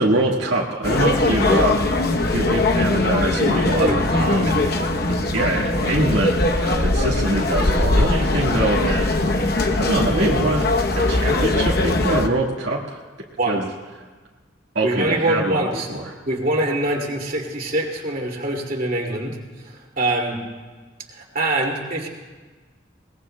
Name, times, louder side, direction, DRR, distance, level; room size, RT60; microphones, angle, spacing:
voice 1, 0.0-1.8 2.3-4.6 5.3-10.7 10.9-13.0 13.4-13.7 14.7-15.6 15.9-16.0, right 1 dB, 80° right, -4 dB, 1.6 m, -24 dB
sound 1, 0.8-12.3, left 2 dB, 55° left, 0.9 m, -20 dB
voice 2, 14.8-15.9 16.3-20.4 21.1-22.1, right 1 dB, 50° right, -1 dB, 2.4 m, -24 dB
22.0 x 20.0 x 2.2 m, 1.3 s
head